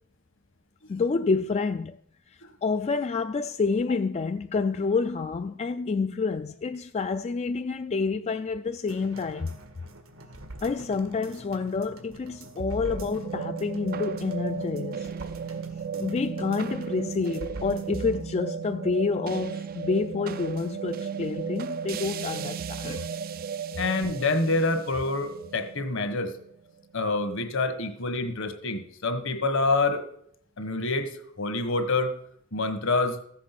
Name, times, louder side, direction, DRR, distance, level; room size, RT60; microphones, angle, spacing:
voice 1, 0.9-2.0 2.6-9.5 10.6-15.1 16.0-23.1, left 4 dB, 30° left, 0.4 m, -28 dB
sound 1, 8.9-18.3 18.7-18.8, right 1 dB, 90° right, 1.8 m, -45 dB
sound 2, 12.6-27.0, right 6 dB, 45° right, 0.4 m, -35 dB
voice 2, 23.8-26.3 26.9-30.0 30.6-31.1 31.4-32.1 32.5-33.2, left 3 dB, 65° left, 1.5 m, -26 dB
14.5 x 7.5 x 5.9 m
head